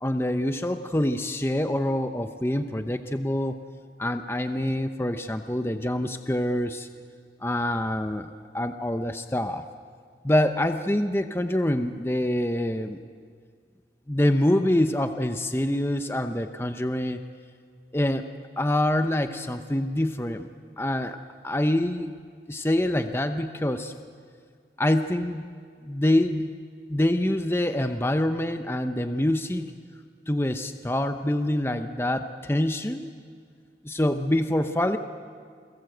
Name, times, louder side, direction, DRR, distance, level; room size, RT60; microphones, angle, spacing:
voice 1, 0.0-3.6 4.0-6.9 7.4-9.7 10.2-13.0 14.1-17.2 17.9-18.3 18.6-20.5 20.8-21.2 21.4-22.1 22.5-23.9 24.8-25.4 25.8-26.5 26.9-29.7 30.3-33.1 33.8-35.0, left 1 dB, 15° left, 8 dB, 0.8 m, -25 dB
29.5 x 22.0 x 7.9 m, 2.1 s
head